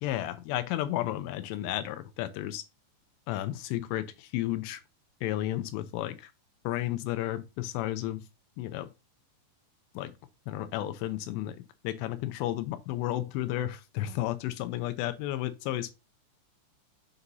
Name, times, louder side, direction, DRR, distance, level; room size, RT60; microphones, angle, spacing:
voice 1, 0.0-2.6 3.3-4.8 5.2-6.3 6.6-8.3 8.6-8.9 10.0-10.1 10.5-15.9, left 14 dB, 80° left, 2.6 m, -32 dB
7.1 x 2.6 x 5.3 m
omnidirectional pair, 5.4 m